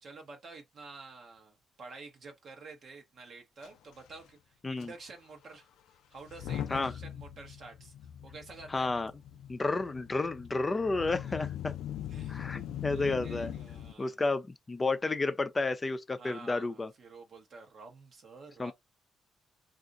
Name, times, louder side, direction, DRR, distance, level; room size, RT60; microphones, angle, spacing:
voice 1, 0.0-5.7 6.1-7.9 8.2-8.9 11.2-11.5 12.1-14.2 16.2-18.7, right 3 dB, 55° right, 0.9 m, -50 dB
Motor vehicle (road) / Engine starting / Accelerating revving vroom, 3.6-3.7 3.9-4.2 4.8-4.9 6.2-13.9, left 11 dB, 80° left, 0.3 m, -41 dB
voice 2, 8.7-9.1 9.5-11.7 12.3-13.5 14.0-16.9 18.6-18.7, left 3 dB, 25° left, 0.5 m, -31 dB
2.5 x 2.4 x 3.8 m
cardioid pair, 90°, 0 cm